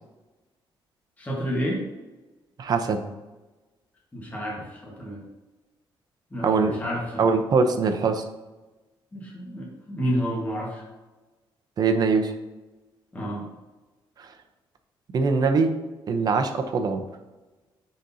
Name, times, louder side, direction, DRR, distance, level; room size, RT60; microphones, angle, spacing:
voice 1, 1.2-1.8 4.1-5.2 6.3-7.2 9.1-10.8 13.1-13.4, equal, 15° left, -3 dB, 1.5 m, -30 dB
voice 2, 2.6-3.0 6.4-6.7 7.2-8.2 11.8-12.3 15.1-15.7 16.1-17.0, right 4 dB, 45° right, 7 dB, 0.7 m, -22 dB
10.0 x 4.1 x 2.8 m, 1.2 s
cardioid pair, 140°, 9 cm